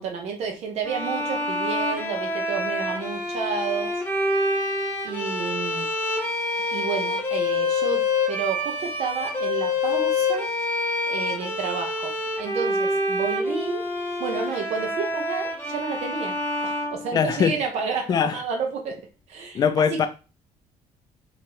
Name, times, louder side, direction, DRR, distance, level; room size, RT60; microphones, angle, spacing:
voice 1, 0.0-3.9 5.0-5.9 6.7-10.5 11.1-13.8 14.2-16.4 16.6-19.0 19.3-19.6, right 5 dB, 55° right, 1.0 m, -31 dB
sound 1, 0.8-17.7, left 2 dB, 15° left, 0.7 m, -27 dB
voice 2, 17.1-17.6 18.1-18.4 19.5-20.1, left 7 dB, 30° left, 0.4 m, -21 dB
4.4 x 3.2 x 3.0 m
cardioid pair, 180°, 13 cm